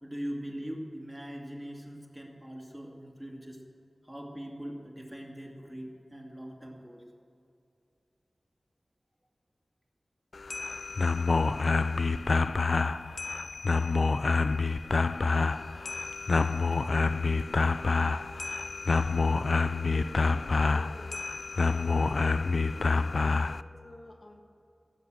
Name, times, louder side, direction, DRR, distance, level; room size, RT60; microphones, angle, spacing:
voice 1, 0.0-3.6 4.0-7.0, equal, 15° right, -1 dB, 2.5 m, -41 dB
sound 1, 10.3-23.6, left 4 dB, 75° left, 0.3 m, -27 dB
voice 2, 19.9-21.2 21.6-24.4, left 1 dB, 50° left, 1 dB, 1.4 m, -50 dB
17.0 x 7.3 x 7.7 m, 2.5 s
wide cardioid pair, 55°, 0 cm